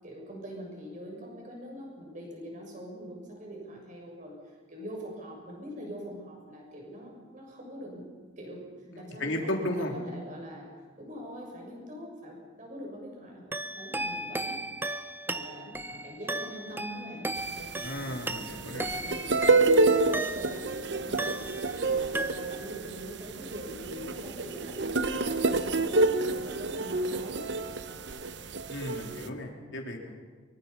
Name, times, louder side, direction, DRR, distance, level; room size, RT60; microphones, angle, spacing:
voice 1, 0.0-8.1 8.4-8.6 8.9-9.7 9.9-10.7 11.0-14.6 14.9-18.1 18.9-27.4, equal, 40° right, 0 dB, 6.8 m, -43 dB
voice 2, 8.9-9.9 17.8-18.9 28.7-30.1, left 1 dB, 65° left, 2 dB, 3.5 m, -34 dB
sound 1, 13.5-20.8 21.2-21.9 22.1-22.8, right 2 dB, 10° right, 0.7 m, -36 dB
sound 2, 17.4-29.3, right 3 dB, 60° right, 0.9 m, -28 dB
24.5 x 24.0 x 5.7 m, 1.5 s
head